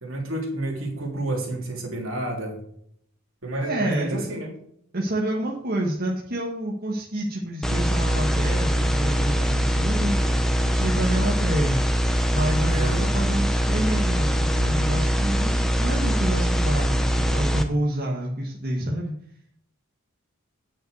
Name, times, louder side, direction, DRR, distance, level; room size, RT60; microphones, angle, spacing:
voice 1, 0.0-2.6 3.4-4.5 12.7-13.1, right 1 dB, 70° right, 0 dB, 3.3 m, -30 dB
voice 2, 3.6-4.2 4.9-10.2 10.6-11.8 12.3-19.1, right 1 dB, 45° right, -2 dB, 1.6 m, -28 dB
sound 1, 7.6-17.6, equal, ahead, 0.9 m, -22 dB
9.6 x 6.4 x 6.5 m, 0.67 s
head